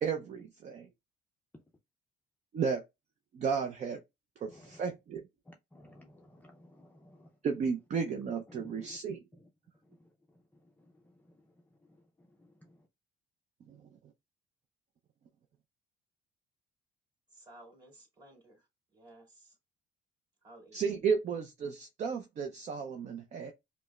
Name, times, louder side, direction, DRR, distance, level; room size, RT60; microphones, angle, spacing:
voice 1, 0.0-0.9 2.5-2.8 3.3-4.0 4.4-5.2 7.4-9.2 13.7-13.8 20.7-23.5, right 6 dB, 45° right, 0.5 m, -33 dB
voice 2, 5.5-7.3 8.5-9.0, left 1 dB, 10° left, 0.5 m, -55 dB
voice 3, 17.3-18.6 18.9-19.5 20.4-20.9, right 1 dB, 25° right, 2.0 m, -55 dB
5.1 x 2.0 x 2.2 m
cardioid pair, 110°, 17 cm